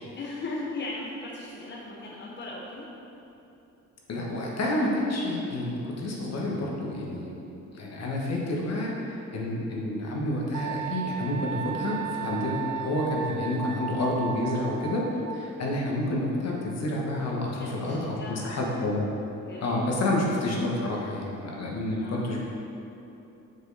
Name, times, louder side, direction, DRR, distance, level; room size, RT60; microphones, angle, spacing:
voice 1, 0.1-2.9 17.6-19.0 19.4-19.9 22.0-22.3, left 2 dB, 35° left, -4 dB, 0.9 m, -38 dB
voice 2, 4.1-7.3 7.7-19.1 19.6-22.4, left 1 dB, 60° left, -2 dB, 1.3 m, -29 dB
Wind instrument woodwind instrument, 10.5-15.5, right 9 dB, 85° right, 0.5 m, -35 dB
6.2 x 5.3 x 4.1 m, 2.9 s
cardioid pair, 90°, 30 cm